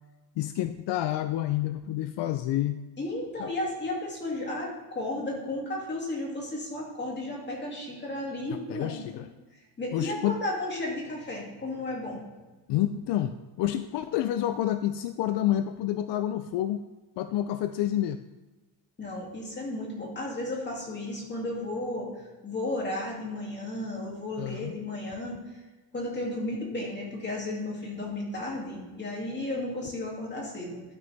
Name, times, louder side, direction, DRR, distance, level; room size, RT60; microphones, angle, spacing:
voice 1, 0.4-2.8 3.4-3.5 8.5-9.3 9.9-10.4 12.7-16.8 17.2-18.2 24.4-24.8, left 12 dB, 75° left, 11 dB, 0.5 m, -29 dB
voice 2, 3.0-9.0 9.8-12.2 19.0-22.1 22.4-25.4 25.9-30.8, left 1 dB, 25° left, -2 dB, 2.6 m, -33 dB
12.0 x 6.7 x 3.5 m, 1.2 s
cardioid pair, 155°, 43 cm